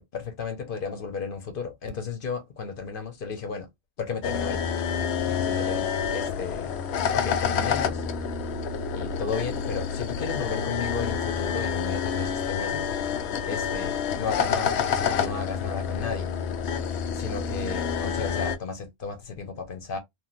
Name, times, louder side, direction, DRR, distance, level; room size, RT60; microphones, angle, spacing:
voice 1, 0.0-3.7 4.0-4.7 5.2-6.7 7.1-8.1 8.9-12.9 13.4-16.3 17.1-20.0, left 5 dB, 55° left, 1.0 m, -34 dB
sound 1, 4.2-18.6, left 7 dB, 80° left, 0.8 m, -28 dB
3.1 x 2.5 x 2.4 m
omnidirectional pair, 1.1 m